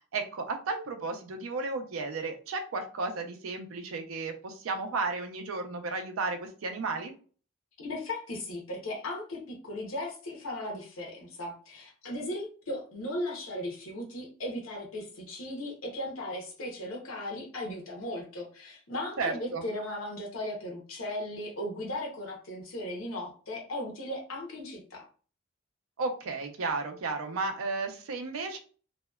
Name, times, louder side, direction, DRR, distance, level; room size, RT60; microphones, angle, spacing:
voice 1, 0.1-7.1 19.2-19.6 26.0-28.6, right 3 dB, 90° right, 5 dB, 0.5 m, -33 dB
voice 2, 7.8-25.1, left 1 dB, 85° left, 0 dB, 0.8 m, -37 dB
2.7 x 2.1 x 2.2 m, 0.39 s
head